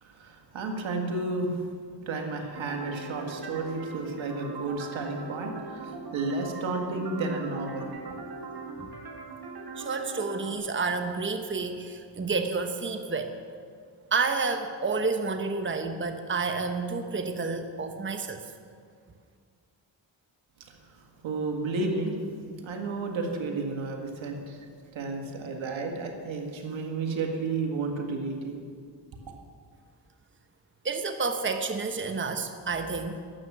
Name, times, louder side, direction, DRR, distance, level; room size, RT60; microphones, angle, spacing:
voice 1, 0.0-1.7 2.1-7.9 20.6-22.2 22.6-24.7 24.9-28.6, right 3 dB, 85° right, 3 dB, 1.9 m, -32 dB
sound 1, 2.6-10.6, right 3 dB, 55° right, 2.4 m, -40 dB
voice 2, 9.8-13.3 14.1-18.4 30.8-33.2, right 4 dB, 25° right, 6 dB, 1.1 m, -30 dB
12.5 x 7.4 x 9.9 m, 2.1 s
cardioid pair, 50°, 45 cm